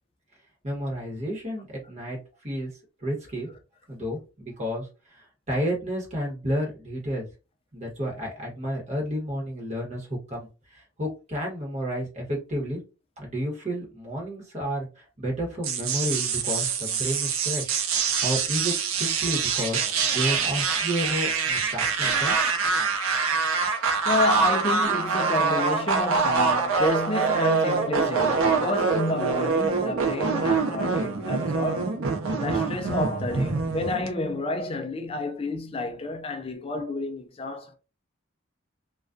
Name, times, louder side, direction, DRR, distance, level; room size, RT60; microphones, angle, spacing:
voice 1, 0.6-2.7 3.0-3.5 3.9-7.3 7.7-12.8 13.2-17.8 18.2-22.4, equal, 35° right, 1.0 m, -31 dB
sound 1, 15.6-34.1, right 5 dB, 90° right, 0.5 m, -25 dB
voice 2, 24.1-32.0 32.4-37.7, left 2 dB, 30° left, 0.4 m, -30 dB
2.3 x 2.3 x 2.4 m
head